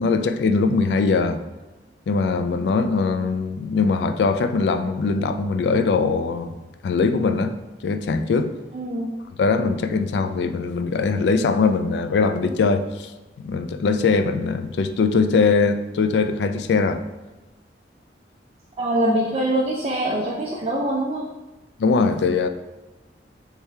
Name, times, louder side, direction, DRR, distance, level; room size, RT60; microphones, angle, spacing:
voice 1, 0.0-1.4 2.1-6.6 6.8-7.5 7.8-8.5 9.4-13.1 13.4-17.0 21.8-22.5, left 4 dB, 70° left, 8 dB, 0.3 m, -21 dB
voice 2, 8.7-9.1 18.8-21.2, right 1 dB, 35° right, -3 dB, 0.4 m, -23 dB
4.6 x 3.3 x 3.2 m, 1.1 s
head